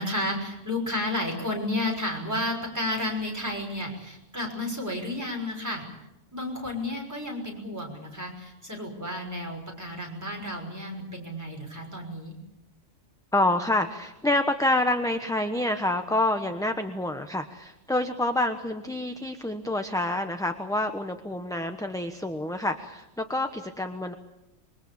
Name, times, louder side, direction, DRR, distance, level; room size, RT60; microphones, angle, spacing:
voice 1, 0.0-5.8 6.3-12.4, left 1 dB, 15° right, 0 dB, 6.1 m, -32 dB
voice 2, 13.3-24.1, left 1 dB, 5° left, 6 dB, 1.0 m, -27 dB
26.5 x 23.0 x 7.2 m, 0.94 s
omnidirectional pair, 1.3 m